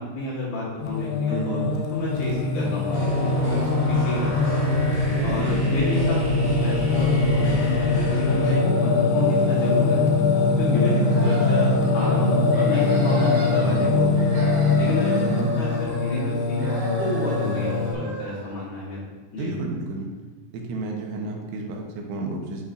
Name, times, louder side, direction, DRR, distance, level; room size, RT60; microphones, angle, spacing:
voice 1, 0.0-1.6 1.9-4.7 5.2-10.0 10.6-14.3 14.8-19.5, left 2 dB, 65° left, -8 dB, 3.1 m, -31 dB
Singing, 0.8-17.9, left 3 dB, 85° left, 3.0 m, -22 dB
voice 2, 1.3-1.7 5.2-5.8 10.7-11.2 15.1-15.5 19.4-20.1 20.5-22.6, right 3 dB, 85° right, 1 dB, 3.4 m, -31 dB
sound 1, 2.9-8.5, right 1 dB, 35° left, 1.1 m, -32 dB
sound 2, 11.0-12.1 12.5-13.9 14.2-16.3 16.6-18.6, right 2 dB, 65° right, 3.1 m, -35 dB
10.5 x 5.5 x 2.6 m, 1.3 s
omnidirectional pair, 5.4 m